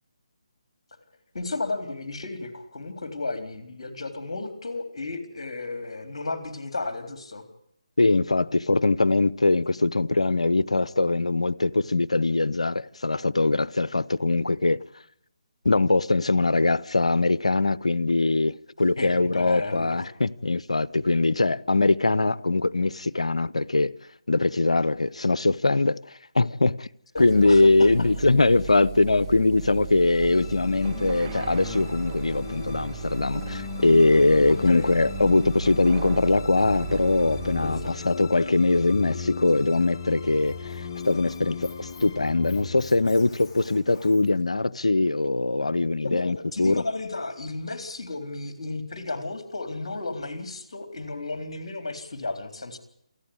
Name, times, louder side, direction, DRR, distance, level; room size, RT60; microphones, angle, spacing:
voice 1, 1.3-7.4 19.0-20.1 27.1-27.9 34.6-34.9 37.8-38.0 46.0-52.8, left 3 dB, 65° left, 3.8 m, -33 dB
voice 2, 8.0-14.8 15.6-23.9 24.3-26.9 27.2-37.8 38.0-46.8, left 2 dB, 85° left, 0.7 m, -22 dB
sound 1, 27.2-37.9, right 10 dB, 30° right, 1.9 m, -37 dB
sound 2, 29.9-44.3, left 6 dB, 40° left, 1.6 m, -37 dB
Squeak, 40.2-44.4, left 4 dB, 20° left, 4.3 m, -51 dB
28.0 x 9.7 x 9.7 m
figure-of-eight pair, 150°, 3 cm